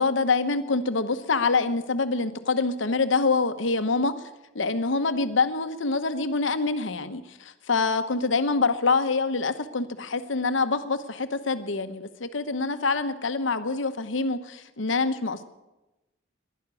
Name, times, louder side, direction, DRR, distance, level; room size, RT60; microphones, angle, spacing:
voice 1, 0.0-4.1 4.5-15.4, left 4 dB, 75° left, 10 dB, 1.0 m, -25 dB
12.0 x 11.0 x 9.7 m, 1.0 s
head